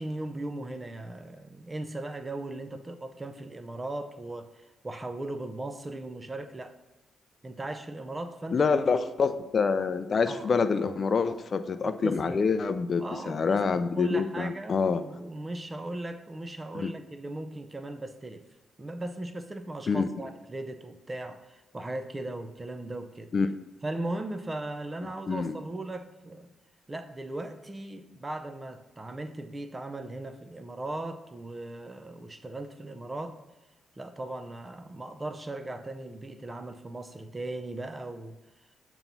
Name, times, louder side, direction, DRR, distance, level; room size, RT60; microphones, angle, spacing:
voice 1, 0.0-6.7 7.4-8.7 10.3-10.5 11.8-12.4 13.0-18.4 18.8-23.3 23.8-26.5 26.9-33.4 34.0-38.4, right 2 dB, 20° right, 9 dB, 0.6 m, -38 dB
voice 2, 8.5-15.0 16.7-16.9 19.9-20.1 23.3-23.5 25.3-25.6, left 5 dB, 45° left, 11 dB, 0.4 m, -26 dB
7.1 x 3.0 x 5.3 m, 1.1 s
cardioid pair, 85°, 0 cm